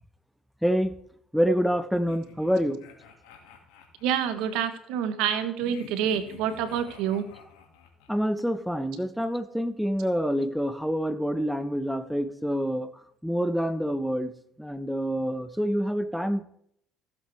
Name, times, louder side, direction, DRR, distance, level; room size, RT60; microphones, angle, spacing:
voice 1, 0.6-0.9 1.3-2.8 8.1-12.9 13.2-14.3 14.6-16.4, equal, ahead, 10 dB, 0.9 m, -27 dB
sound 1, 1.9-4.6 5.6-8.2, left 8 dB, 90° left, 2.2 m, -50 dB
voice 2, 4.0-7.2, right 9 dB, 80° right, 10 dB, 1.3 m, -27 dB
15.0 x 7.6 x 3.5 m, 0.68 s
supercardioid pair, 95°, 0 cm